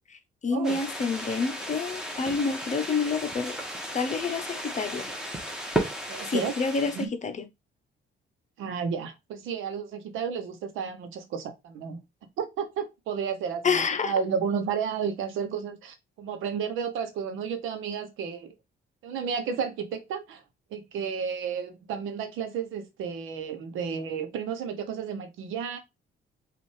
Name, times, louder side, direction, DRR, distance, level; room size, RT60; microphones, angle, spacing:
voice 1, 0.1-3.6 3.9-5.1 6.2-7.5 13.6-14.1, left 4 dB, 35° left, 0.7 m, -28 dB
sound 1, 0.6-7.1, right 1 dB, 5° right, 1.3 m, -34 dB
voice 2, 6.1-6.5 6.9-7.1 8.6-12.0 12.4-18.5 19.0-20.4 20.7-25.8, right 6 dB, 90° right, 0.9 m, -32 dB
5.3 x 2.5 x 3.2 m
cardioid pair, 90°, 20 cm